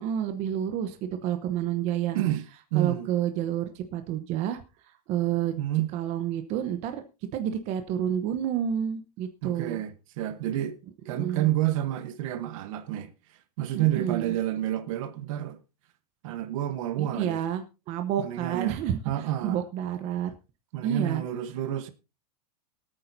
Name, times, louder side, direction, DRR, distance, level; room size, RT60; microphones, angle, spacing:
voice 1, 0.0-2.2 2.7-4.6 5.1-5.5 5.9-7.0 7.3-9.8 11.2-11.5 13.7-14.3 17.0-19.0 19.4-20.3 20.8-21.2, right 10 dB, 35° right, 1.0 m, -29 dB
voice 2, 2.7-3.1 5.6-5.9 9.4-10.8 11.0-13.1 13.6-15.6 16.2-17.4 18.2-18.8 19.0-19.6 20.7-21.9, right 13 dB, 55° right, 1.2 m, -29 dB
23.5 x 9.0 x 2.7 m
supercardioid pair, 165°, 20 cm